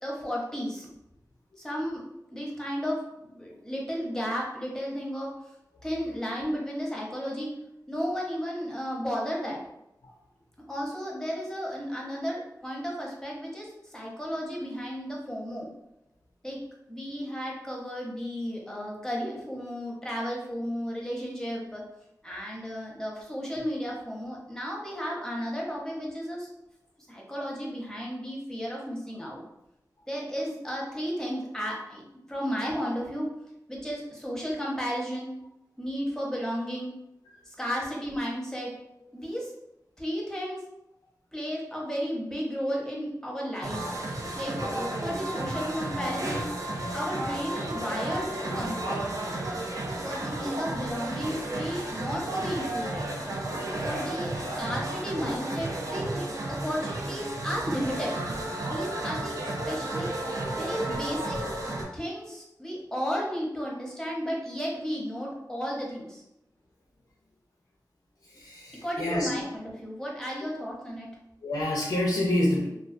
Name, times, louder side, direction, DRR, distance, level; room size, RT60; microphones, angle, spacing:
voice 1, 0.0-0.9 1.6-2.0 2.3-5.3 5.8-7.5 7.9-9.6 10.7-15.7 16.4-16.6 16.9-21.8 22.2-26.5 27.1-29.4 30.1-32.0 32.3-33.3 33.7-35.4 35.8-36.9 37.4-38.7 39.1-39.5 40.0-40.6 41.3-43.9 44.3-46.4 46.9-49.0 50.0-53.1 53.7-58.1 58.7-60.1 60.6-61.4 61.9-66.2 68.8-71.1, equal, 10° left, -3 dB, 0.7 m, -33 dB
sound 1, 43.6-61.8, right 1 dB, 55° right, 0.5 m, -33 dB
voice 2, 68.2-69.3 71.4-72.7, left 1 dB, 85° left, -3 dB, 0.4 m, -28 dB
2.2 x 2.2 x 2.5 m, 0.84 s
wide cardioid pair, 65°, 7 cm